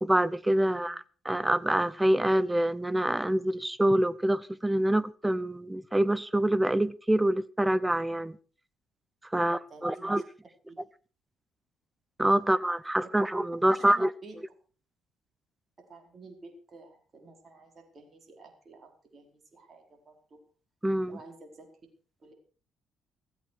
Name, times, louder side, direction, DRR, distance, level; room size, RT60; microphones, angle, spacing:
voice 1, 0.0-8.4 9.3-10.2 12.2-14.1 20.8-21.2, right 1 dB, 10° right, 0.9 m, -26 dB
voice 2, 0.6-1.0 9.3-10.2 10.7-10.8 13.0-13.1 13.7-14.4 15.8-20.4 21.1-21.7 22.2-22.3, right 3 dB, 35° right, 4.7 m, -51 dB
15.5 x 15.0 x 4.8 m
figure-of-eight pair, 45°, 0 cm